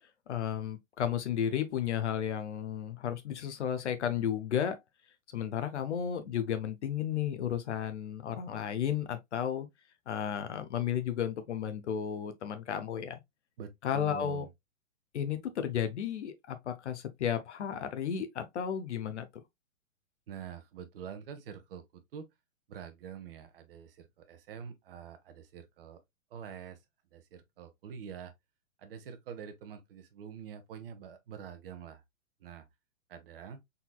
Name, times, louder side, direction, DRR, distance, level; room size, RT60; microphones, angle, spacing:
voice 1, 0.3-4.8 5.3-9.7 10.1-13.2 13.8-14.5 15.1-19.2, left 9 dB, 55° left, 0.9 m, -33 dB
voice 2, 13.6-14.5 20.3-22.3 22.7-26.0 26.3-26.8 27.1-28.3 28.8-32.0 32.4-32.6 33.1-33.6, right 7 dB, 45° right, 1.0 m, -46 dB
4.2 x 4.1 x 2.2 m
figure-of-eight pair, 115°, 41 cm